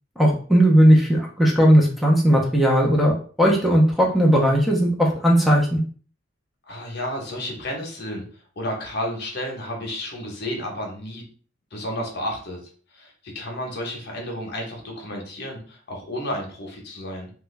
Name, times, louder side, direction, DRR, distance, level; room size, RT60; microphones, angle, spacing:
voice 1, 0.2-5.8, equal, ahead, -2 dB, 0.7 m, -17 dB
voice 2, 6.7-8.2 8.6-11.2 11.7-12.6 12.9-17.3, left 1 dB, 60° left, 1 dB, 0.9 m, -32 dB
3.2 x 2.3 x 3.2 m, 0.42 s
head